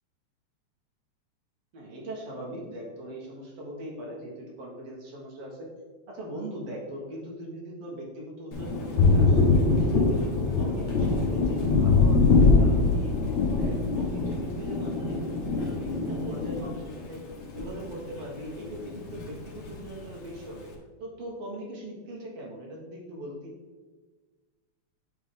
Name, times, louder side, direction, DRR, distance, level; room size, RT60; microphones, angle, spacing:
voice 1, 1.7-5.7 6.1-9.4 9.8-13.2 13.5-17.2 17.5-20.7 21.0-23.5, right 1 dB, 60° right, -3 dB, 2.4 m, -40 dB
Thunder, 8.5-18.3 18.6-19.7, left 3 dB, 60° left, 1.3 m, -24 dB
9.1 x 3.5 x 3.7 m, 1.3 s
omnidirectional pair, 3.4 m